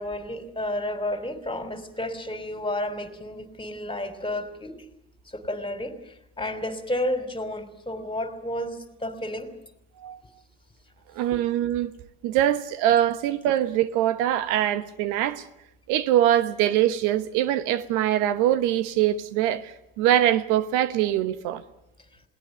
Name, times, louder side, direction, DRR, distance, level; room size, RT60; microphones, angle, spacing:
voice 1, 0.0-4.8 5.3-9.5 11.3-11.4, left 1 dB, 15° left, 3.2 m, -31 dB
voice 2, 11.1-11.9 12.2-15.4 15.9-21.6, right 12 dB, 80° right, 1.2 m, -23 dB
21.5 x 17.5 x 9.2 m
supercardioid pair, 80°, 30 cm